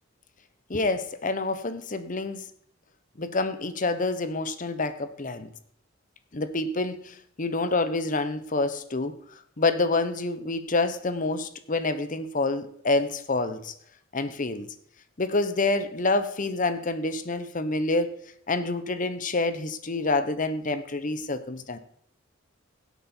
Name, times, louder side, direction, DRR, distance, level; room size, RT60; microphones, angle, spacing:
voice 1, 0.7-2.4 3.2-5.5 6.3-9.2 9.6-13.7 14.1-14.7 15.2-18.2 18.5-21.8, left 3 dB, 40° left, 11 dB, 0.9 m, -27 dB
16.5 x 8.2 x 4.5 m, 0.64 s
head